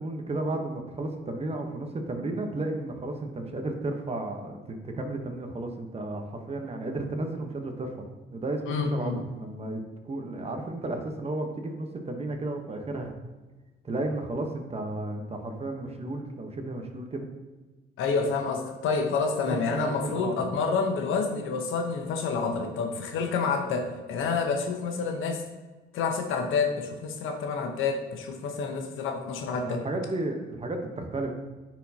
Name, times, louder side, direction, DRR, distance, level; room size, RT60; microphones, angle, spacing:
voice 1, 0.0-7.9 8.3-13.1 13.8-17.3 19.4-20.4 29.6-31.3, right 2 dB, 30° right, 4 dB, 1.0 m, -33 dB
voice 2, 8.7-9.2 18.0-25.4 25.9-29.8, left 4 dB, 85° left, 4 dB, 1.0 m, -28 dB
9.8 x 4.5 x 2.8 m, 1.2 s
cardioid pair, 90°, 20 cm